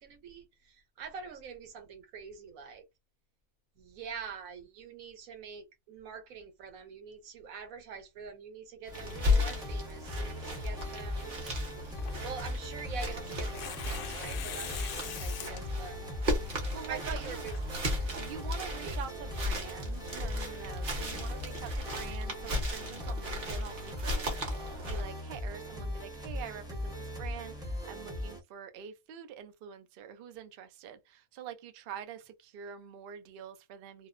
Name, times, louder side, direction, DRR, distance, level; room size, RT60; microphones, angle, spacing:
voice 1, 0.0-2.9 3.8-11.4 12.2-16.0 16.9-17.5 17.9-18.3 18.8-19.0, right 6 dB, 70° right, 1.1 m, -45 dB
sound 1, 8.9-28.4, left 1 dB, 5° right, 0.4 m, -39 dB
sound 2, 8.9-25.0, left 2 dB, 40° right, 0.9 m, -35 dB
Tearing, 10.6-18.3, left 6 dB, 65° left, 0.8 m, -45 dB
voice 2, 16.4-17.4 18.2-34.1, right 8 dB, 90° right, 0.5 m, -46 dB
2.7 x 2.0 x 2.4 m
omnidirectional pair, 1.6 m